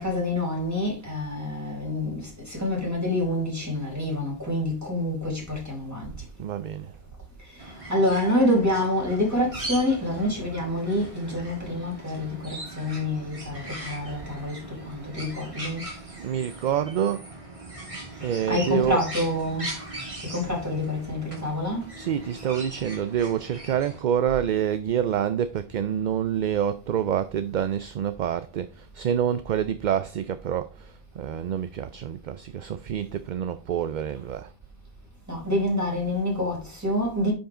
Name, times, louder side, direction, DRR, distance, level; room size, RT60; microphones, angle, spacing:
voice 1, 0.0-6.1 7.5-15.8 18.5-19.7 20.2-21.9 35.3-37.3, left 1 dB, 15° right, 4.6 m, -27 dB
voice 2, 6.4-6.9 16.2-17.3 18.2-19.0 22.0-34.5, right 9 dB, 55° right, 0.6 m, -27 dB
sound 1, 7.6-24.0, right 2 dB, 30° right, 2.2 m, -40 dB
10.0 x 5.3 x 3.7 m
omnidirectional pair, 1.0 m